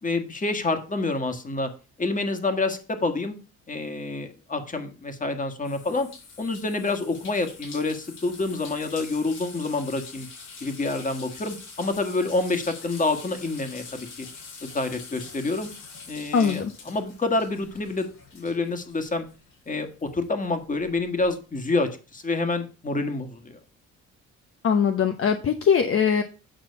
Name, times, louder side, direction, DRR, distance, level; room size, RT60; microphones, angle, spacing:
voice 1, 0.0-1.7 2.0-3.4 3.7-6.1 6.4-10.3 10.6-14.3 14.6-15.7 16.1-18.1 18.3-19.3 19.7-23.6, left 3 dB, 25° left, 7 dB, 1.7 m, -28 dB
sound 1, 5.6-19.7 20.0-21.2, left 4 dB, 85° left, 5.1 m, -44 dB
voice 2, 16.3-16.7 24.6-26.2, left 7 dB, 45° left, 6 dB, 0.9 m, -21 dB
9.0 x 4.0 x 6.8 m, 0.35 s
cardioid pair, 90°, 30 cm